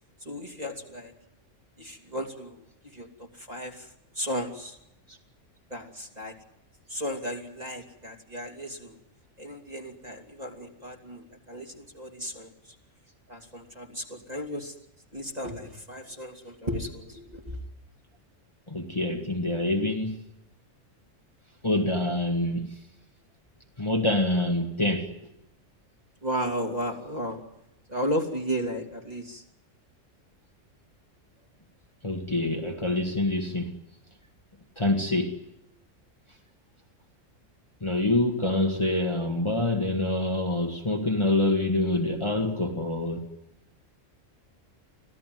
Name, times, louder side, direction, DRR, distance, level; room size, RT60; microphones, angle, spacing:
voice 1, 0.2-1.1 1.8-2.6 2.9-3.9 4.1-4.7 5.7-6.3 6.9-9.0 9.4-12.5 13.3-14.7 15.1-17.6 26.2-27.4 27.9-29.4, equal, 30° right, 3 dB, 3.1 m, -34 dB
voice 2, 18.7-20.2 21.6-22.7 23.8-25.1 32.0-33.7 34.8-35.4 37.8-43.3, left 1 dB, 20° left, 2 dB, 2.1 m, -26 dB
26.0 x 16.0 x 9.4 m, 0.84 s
omnidirectional pair, 1.3 m